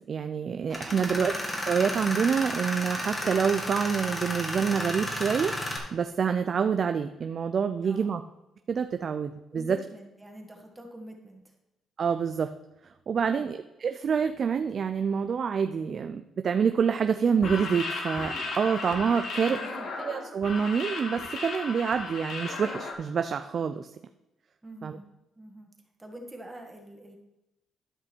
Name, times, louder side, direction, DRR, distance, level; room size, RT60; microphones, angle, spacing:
voice 1, 0.1-1.3 1.7-8.2 8.7-9.8 12.0-12.5 13.1-19.6 20.0-23.9 24.8-25.0, right 6 dB, 50° right, 8 dB, 0.4 m, -27 dB
Tools, 0.7-5.8, left 1 dB, 20° left, 2.1 m, -33 dB
voice 2, 7.8-8.2 9.5-11.6 13.2-13.5 19.4-19.9 24.6-25.1 25.4-25.7 26.0-27.2, right 1 dB, 15° right, 2 dB, 1.6 m, -45 dB
sound 1, 17.3-22.9, left 3 dB, 65° left, 1.8 m, -35 dB
12.5 x 5.4 x 4.4 m, 0.95 s
cardioid pair, 90°, 0 cm